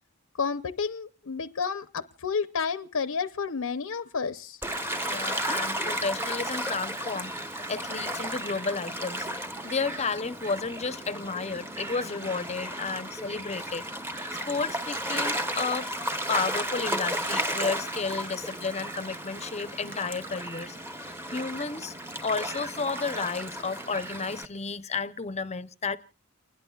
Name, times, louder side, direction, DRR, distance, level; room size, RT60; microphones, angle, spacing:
voice 1, 0.4-4.6, left 5 dB, 70° left, 0.7 m, -31 dB
Gull seagull / Waves surf, 4.6-24.5, right 1 dB, 10° right, 1.1 m, -34 dB
voice 2, 5.0-9.3 9.6-13.8 14.5-15.9 16.3-20.8 21.3-21.9 22.2-26.0, left 4 dB, 30° left, 0.7 m, -32 dB
29.5 x 21.0 x 2.4 m
head